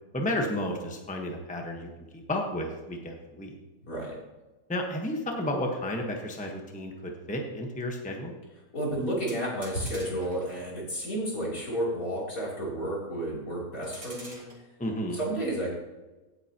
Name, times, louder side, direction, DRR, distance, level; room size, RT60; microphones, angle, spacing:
voice 1, 0.1-3.6 4.7-8.4 14.8-15.2, left 1 dB, 5° left, 1 dB, 1.1 m, -32 dB
voice 2, 3.8-4.2 8.7-14.5 15.1-15.7, right 1 dB, 70° left, -5 dB, 3.8 m, -31 dB
sound 1, 9.3-10.7 13.8-14.6, right 1 dB, 20° right, 2.2 m, -46 dB
16.5 x 8.0 x 2.9 m, 1.2 s
omnidirectional pair, 1.5 m